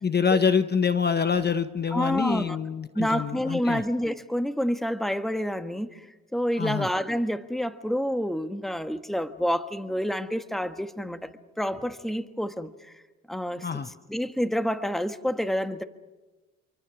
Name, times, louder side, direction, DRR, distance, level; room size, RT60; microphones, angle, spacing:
voice 1, 0.0-3.8 6.6-6.9 13.6-13.9, left 6 dB, 35° left, 11 dB, 1.0 m, -25 dB
voice 2, 1.9-2.6 2.9-6.0 6.3-12.9 13.3-13.7 14.1-15.8, equal, ahead, 9 dB, 1.4 m, -28 dB
28.0 x 24.0 x 6.1 m, 1.2 s
cardioid pair, 90°, 30 cm